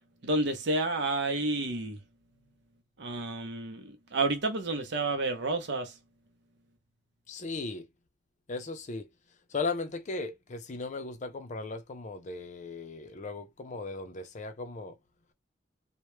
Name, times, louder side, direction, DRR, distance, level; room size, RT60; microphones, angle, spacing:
voice 1, 0.2-2.0 3.0-5.9, right 2 dB, 65° right, 0.6 m, -30 dB
voice 2, 7.3-7.9 8.5-9.0 9.5-14.9, left 3 dB, 40° left, 0.5 m, -37 dB
2.1 x 2.1 x 3.0 m
head